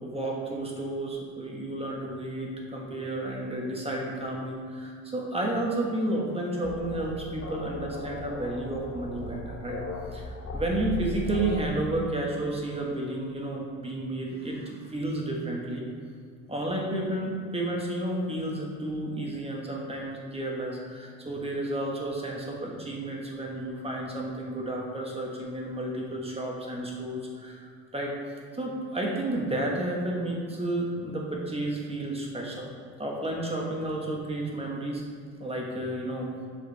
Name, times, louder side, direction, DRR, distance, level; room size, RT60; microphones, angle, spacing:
voice 1, 0.0-9.8 10.1-15.8 16.5-27.7 27.9-28.2 28.5-32.7 33.0-35.0 35.4-36.3, right 1 dB, 20° right, -2 dB, 1.4 m, -31 dB
sound 1, 6.6-11.7, left 3 dB, 50° left, 0.9 m, -37 dB
6.8 x 5.0 x 3.4 m, 2.2 s
cardioid pair, 90°, 30 cm